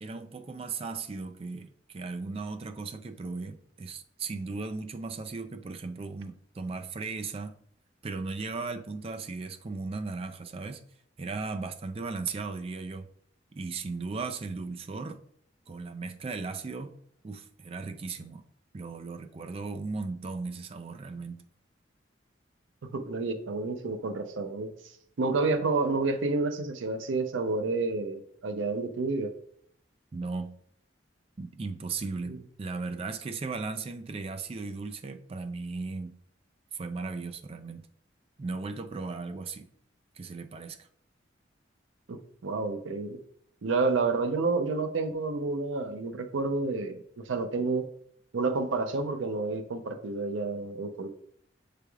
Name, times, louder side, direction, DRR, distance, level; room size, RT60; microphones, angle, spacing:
voice 1, 0.0-7.6 8.0-10.8 11.2-13.1 13.5-15.2 15.7-17.0 17.2-18.4 18.7-21.4 30.1-30.5 31.4-36.2 36.7-37.9 38.4-39.7 40.2-40.9, right 4 dB, 30° right, 8 dB, 0.3 m, -36 dB
voice 2, 22.9-24.7 25.2-29.3 32.3-32.4 42.1-43.2 43.6-47.9 48.3-51.1, right 3 dB, 90° right, 8 dB, 0.5 m, -29 dB
6.9 x 3.3 x 2.3 m, 0.65 s
head